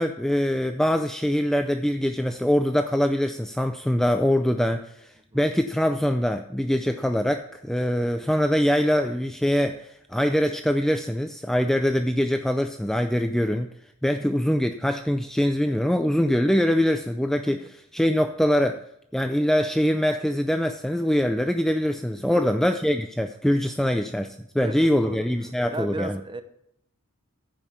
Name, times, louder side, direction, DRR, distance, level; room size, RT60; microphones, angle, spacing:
voice 1, 0.0-13.7 14.0-18.8 19.1-26.2, equal, ahead, 7 dB, 0.3 m, -23 dB
voice 2, 22.3-22.6 24.6-25.3 25.7-26.4, right 2 dB, 20° right, 9 dB, 0.8 m, -36 dB
14.0 x 5.4 x 5.7 m, 0.75 s
head